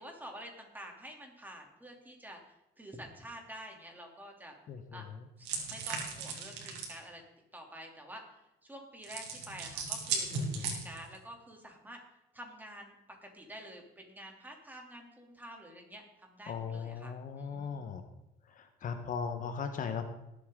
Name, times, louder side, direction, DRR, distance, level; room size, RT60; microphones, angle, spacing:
voice 1, 0.0-2.4 2.8-4.6 4.9-5.1 5.4-7.2 7.5-8.2 8.7-12.0 12.3-12.9 13.2-17.9, equal, 10° right, 1 dB, 2.9 m, -49 dB
voice 2, 4.7-5.3 10.3-10.8 16.5-18.0 18.5-20.1, left 6 dB, 50° left, 7 dB, 1.2 m, -38 dB
sound 1, 5.4-7.0 9.0-11.2, right 5 dB, 90° right, 2.8 m, -37 dB
19.0 x 8.4 x 3.8 m, 0.90 s
cardioid pair, 110°, 17 cm